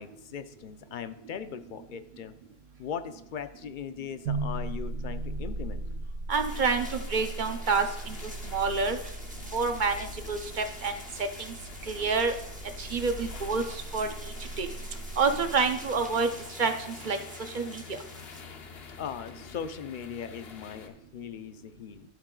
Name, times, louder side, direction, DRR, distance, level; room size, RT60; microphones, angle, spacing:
voice 1, 0.0-2.3 2.8-5.8 19.0-22.1, left 7 dB, 60° left, 11 dB, 0.6 m, -39 dB
sound 1, 4.2-16.3, right 2 dB, 80° right, 0.9 m, -38 dB
sound 2, 6.3-18.4, right 1 dB, 10° right, 0.6 m, -48 dB
voice 2, 6.3-8.2 8.5-9.0 9.5-9.9 10.3-10.9 11.9-12.3 12.8-13.6 13.9-14.1 14.6-14.7 15.2-16.3 16.6-16.7 17.0-17.2 17.5-18.0, right 4 dB, 55° right, 6 dB, 0.7 m, -27 dB
sound 3, 6.5-20.9, left 5 dB, 75° left, 1.0 m, -47 dB
12.0 x 4.0 x 3.8 m, 0.77 s
omnidirectional pair, 1.1 m